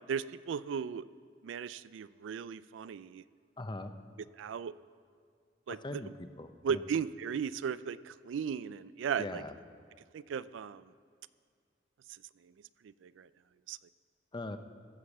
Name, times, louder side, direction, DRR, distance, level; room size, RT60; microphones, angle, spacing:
voice 1, 0.1-1.0 1.4-3.2 4.4-4.7 5.7-6.0 6.6-9.4 10.1-10.8 13.0-13.3 13.7-13.8, right 7 dB, 90° right, 17 dB, 0.3 m, -36 dB
voice 2, 3.6-3.9 5.8-6.8 9.2-9.5 14.3-14.6, left 2 dB, 25° left, 9 dB, 0.6 m, -41 dB
14.5 x 6.6 x 7.2 m, 2.1 s
head